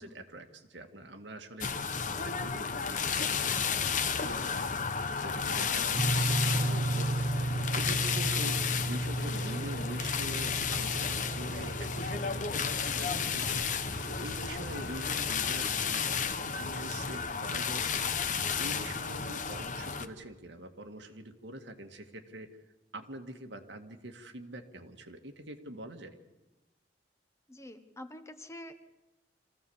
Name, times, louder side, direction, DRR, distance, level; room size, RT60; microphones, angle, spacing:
voice 1, 0.0-4.5 5.2-8.6 8.9-18.2 18.6-22.5 22.9-26.2, right 1 dB, 85° right, 5 dB, 1.9 m, -45 dB
sound 1, 1.6-20.1, left 6 dB, 45° left, 1.0 m, -33 dB
sound 2, 3.0-15.7, left 3 dB, 65° left, 0.8 m, -44 dB
sound 3, 5.9-16.1, right 2 dB, 55° right, 0.9 m, -35 dB
voice 2, 27.5-28.7, left 1 dB, 15° left, 8 dB, 1.1 m, -47 dB
25.0 x 15.5 x 7.2 m, 1.1 s
head